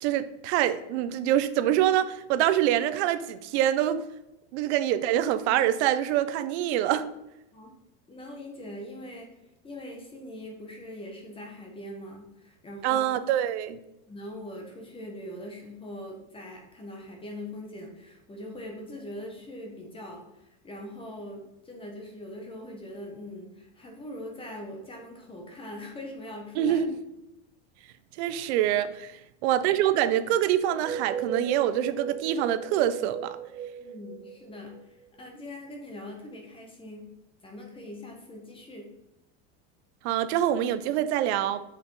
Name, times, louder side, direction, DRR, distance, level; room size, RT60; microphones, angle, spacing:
voice 1, 0.0-4.0 4.5-7.1 12.8-13.8 26.6-26.9 28.2-33.4 40.0-41.6, right 11 dB, 60° right, 12 dB, 0.7 m, -25 dB
voice 2, 8.1-9.3 9.6-13.1 14.1-26.8 33.8-37.1 37.4-38.9, left 1 dB, 15° left, 1 dB, 1.4 m, -42 dB
sound 1, 30.6-35.2, right 7 dB, 20° right, 1.0 m, -36 dB
6.6 x 5.6 x 4.8 m, 0.89 s
supercardioid pair, 155°, 37 cm